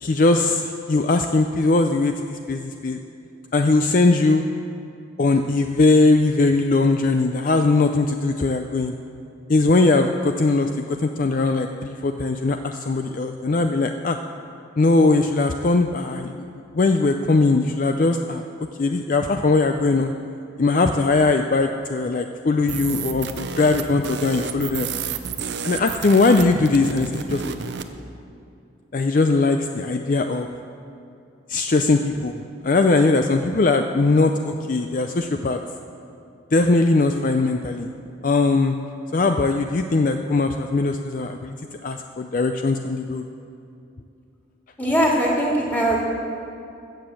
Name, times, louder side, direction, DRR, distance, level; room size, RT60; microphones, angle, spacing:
voice 1, 0.0-3.0 3.5-4.4 5.2-8.9 9.5-14.2 14.8-16.4 16.7-18.4 18.8-20.1 20.6-24.9 25.6-27.8 28.9-30.5 31.5-35.6 36.5-37.9 38.2-38.7 39.1-41.5 41.8-43.2, left 3 dB, 45° left, 6 dB, 0.4 m, -20 dB
sound 1, 22.7-27.9, right 5 dB, 60° right, 0.7 m, -31 dB
voice 2, 44.8-46.0, right 1 dB, 10° left, -4 dB, 2.2 m, -20 dB
15.5 x 6.9 x 7.7 m, 2.6 s
head